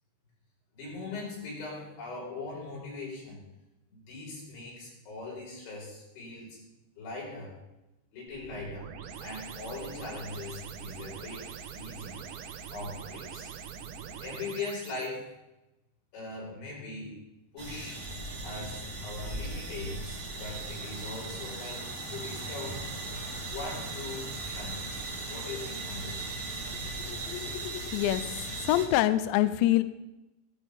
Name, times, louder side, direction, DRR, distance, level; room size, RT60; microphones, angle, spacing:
voice 1, 0.7-3.4 3.9-6.6 7.0-7.5 8.1-8.9 9.2-12.2 12.7-13.5 14.2-15.3 16.1-17.2 17.5-18.0 18.4-22.8 23.5-24.8 25.3-26.3, left 3 dB, 65° left, -4 dB, 7.2 m, -40 dB
sound 1, 8.3-15.1, right 7 dB, 75° right, 3.2 m, -43 dB
sound 2, 17.6-28.9, right 2 dB, 40° right, 1.2 m, -38 dB
voice 2, 27.0-28.2 28.6-29.8, left 14 dB, 85° left, 12 dB, 2.5 m, -26 dB
15.5 x 15.0 x 3.6 m, 0.97 s
omnidirectional pair, 5.8 m